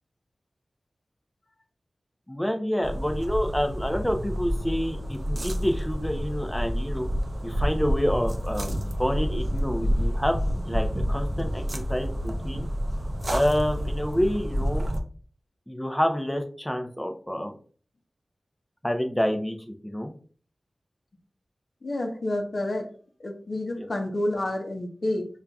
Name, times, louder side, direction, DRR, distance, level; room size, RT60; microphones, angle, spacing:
voice 1, 2.3-7.1 7.4-12.7 13.3-14.8 15.7-17.5 18.8-20.1 23.8-23.9, equal, 10° left, 5 dB, 0.5 m, -28 dB
sound 1, 2.8-15.0, equal, 45° right, 0.5 m, -29 dB
voice 2, 21.8-22.9 23.2-25.3, left 1 dB, 60° left, 3 dB, 0.6 m, -29 dB
5.4 x 2.4 x 2.3 m, 0.43 s
wide cardioid pair, 70°, 0 cm